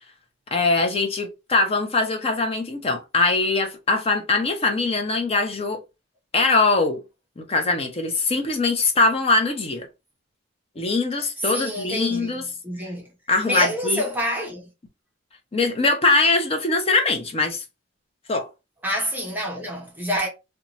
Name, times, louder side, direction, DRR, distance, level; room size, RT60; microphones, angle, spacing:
voice 1, 0.5-5.8 6.3-7.0 7.4-9.9 10.8-12.4 13.3-14.0 15.5-17.6 18.3-18.5, left 3 dB, 30° left, 0.6 m, -22 dB
voice 2, 11.5-12.3 12.6-13.1 13.4-14.7 18.8-20.3, equal, 10° right, 0.8 m, -27 dB
2.7 x 2.3 x 2.9 m
head